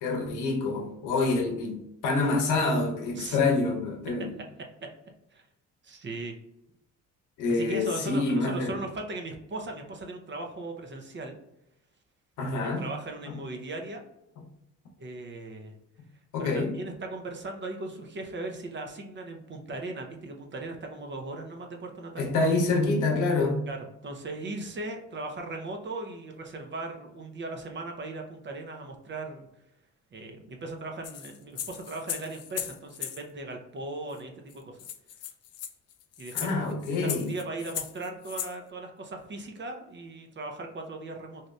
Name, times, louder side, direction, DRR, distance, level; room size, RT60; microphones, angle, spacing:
voice 1, 0.0-4.3 7.4-8.7 12.4-12.9 13.3-13.4 16.3-16.8 22.2-23.6 36.3-37.3, left 3 dB, 85° left, 2 dB, 0.8 m, -27 dB
voice 2, 5.8-6.3 7.5-11.4 12.6-14.0 15.0-15.7 16.4-22.3 23.7-23.8 24.0-29.5 30.1-34.8 36.2-36.6 37.0-41.4, right 2 dB, 40° right, 3 dB, 0.7 m, -38 dB
sound 1, 31.0-33.2 34.2-34.3 34.5-34.6 34.8-38.5, left 10 dB, 55° left, 0.4 m, -37 dB
2.8 x 2.5 x 3.2 m, 0.84 s
cardioid pair, 90°, 30 cm